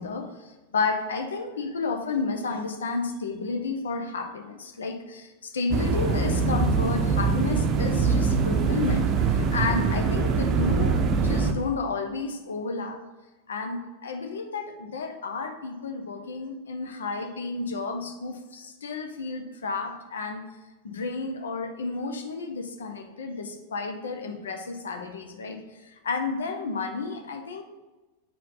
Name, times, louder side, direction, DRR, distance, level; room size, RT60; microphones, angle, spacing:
voice 1, 0.0-13.0 13.5-20.5 20.8-27.6, left 4 dB, 65° left, 6 dB, 0.8 m, -31 dB
sound 1, 5.7-11.5, right 5 dB, 35° right, 0.6 m, -23 dB
8.3 x 4.2 x 4.1 m, 1.1 s
figure-of-eight pair, 90°, 0 cm